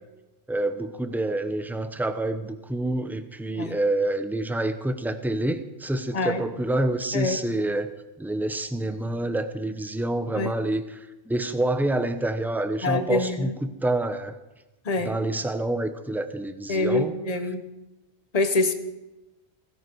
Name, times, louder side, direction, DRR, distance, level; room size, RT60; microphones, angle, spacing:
voice 1, 0.5-7.9 8.2-14.3 15.0-17.1, right 1 dB, ahead, 9 dB, 0.8 m, -27 dB
voice 2, 12.8-13.5 14.8-15.1 16.7-17.7 18.3-18.7, left 2 dB, 35° left, 8 dB, 1.1 m, -25 dB
16.5 x 15.5 x 4.7 m, 1.0 s
omnidirectional pair, 1.2 m